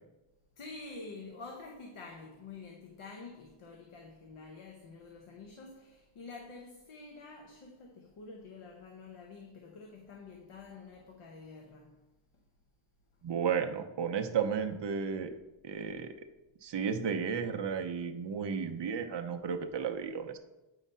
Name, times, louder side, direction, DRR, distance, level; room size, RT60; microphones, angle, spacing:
voice 1, 0.6-12.0, left 3 dB, 80° left, 1.1 m, -48 dB
voice 2, 13.2-15.3 15.6-16.1 16.6-20.4, right 6 dB, 60° right, 0.7 m, -33 dB
8.3 x 4.9 x 5.5 m
wide cardioid pair, 170°, 49 cm